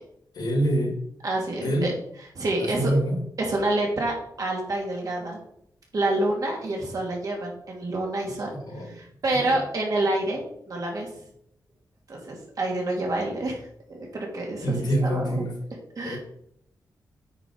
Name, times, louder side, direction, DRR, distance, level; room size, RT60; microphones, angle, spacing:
voice 1, 0.3-1.0 1.6-1.9 2.6-3.2 8.5-8.9 9.3-9.6 14.6-15.6 16.0-16.2, right 1 dB, 80° left, 0 dB, 2.9 m, -26 dB
voice 2, 1.2-1.9 2.3-2.9 3.4-5.4 5.9-8.5 8.8-11.1 12.1-13.6 13.9-15.4 16.0-16.2, right 2 dB, 55° right, -1 dB, 2.7 m, -28 dB
8.9 x 5.4 x 4.7 m, 0.71 s
wide cardioid pair, 110°, 7 cm